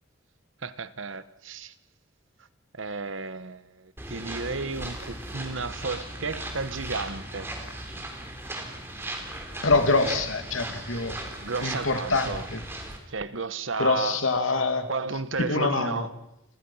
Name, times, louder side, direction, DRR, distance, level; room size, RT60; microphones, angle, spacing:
voice 1, 0.6-1.7 2.7-7.5 9.9-10.2 11.4-12.5 13.1-14.2 14.9-16.1, right 3 dB, 75° right, 1.3 m, -33 dB
sound 1, 4.0-13.0, right 1 dB, 10° right, 3.6 m, -37 dB
voice 2, 9.6-11.2 11.6-12.6 13.8-14.9 15.4-16.1, left 3 dB, 85° left, 2.8 m, -25 dB
30.0 x 22.0 x 5.8 m
head